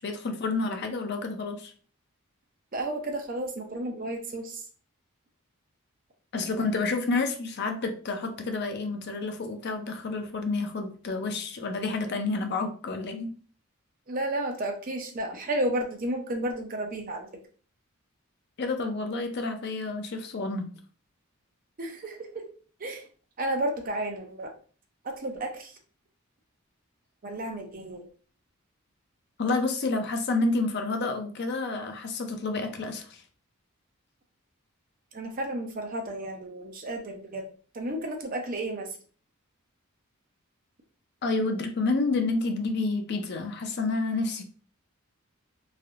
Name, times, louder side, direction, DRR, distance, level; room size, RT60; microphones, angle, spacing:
voice 1, 0.0-1.7 6.3-13.3 18.6-20.7 29.4-33.2 41.2-44.4, left 3 dB, 50° left, 6 dB, 0.5 m, -29 dB
voice 2, 2.7-4.6 14.1-17.3 21.8-22.4 22.8-23.0 23.4-24.5 25.0-25.7 27.2-28.1 35.1-37.4 37.7-38.9, right 1 dB, 40° right, 3 dB, 0.6 m, -32 dB
3.3 x 2.6 x 2.4 m, 0.41 s
head